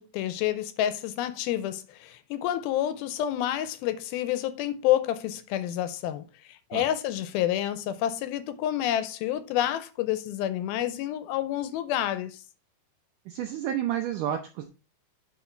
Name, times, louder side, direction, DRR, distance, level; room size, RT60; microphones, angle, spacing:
voice 1, 0.0-12.4, left 12 dB, 80° left, 2.3 m, -29 dB
voice 2, 13.3-14.8, right 10 dB, 80° right, 1.8 m, -30 dB
9.6 x 4.2 x 4.4 m
omnidirectional pair, 4.6 m